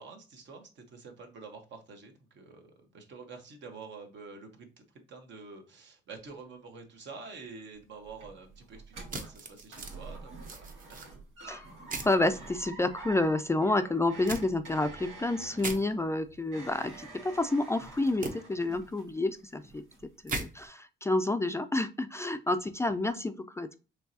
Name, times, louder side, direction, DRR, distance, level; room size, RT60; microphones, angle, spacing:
voice 1, 0.0-2.7 2.9-4.7 5.1-11.2, right 4 dB, 65° right, 4 dB, 1.2 m, -48 dB
sound 1, 7.7-19.3 19.6-20.2 20.5-20.7, right 3 dB, 90° right, 1.9 m, -47 dB
sound 2, 9.1-10.0 10.4-11.1 11.9-12.2 14.3-14.4 15.6-15.8 18.2-18.3 20.3-20.5, right 3 dB, 45° right, 1.0 m, -37 dB
voice 2, 12.0-19.8 20.2-23.8, left 2 dB, 15° left, 9 dB, 0.4 m, -29 dB
4.5 x 3.2 x 2.7 m, 0.33 s
cardioid pair, 90°, 20 cm